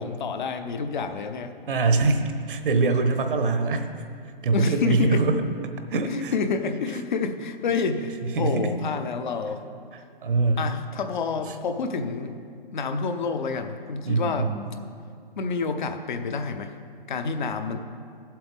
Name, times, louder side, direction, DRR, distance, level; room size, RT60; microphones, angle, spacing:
voice 1, 0.0-1.5 4.5-5.2 6.0-9.6 10.6-12.3 12.7-14.5 15.4-16.7 17.1-17.8, left 4 dB, 55° left, 7 dB, 0.9 m, -28 dB
voice 2, 1.7-3.9 4.2-5.4 5.9-6.3 8.2-8.7 9.9-10.7 11.5-11.6 14.0-14.7, right 3 dB, 65° right, 7 dB, 1.1 m, -24 dB
15.0 x 7.8 x 3.6 m, 2.3 s
hypercardioid pair, 145°, 29 cm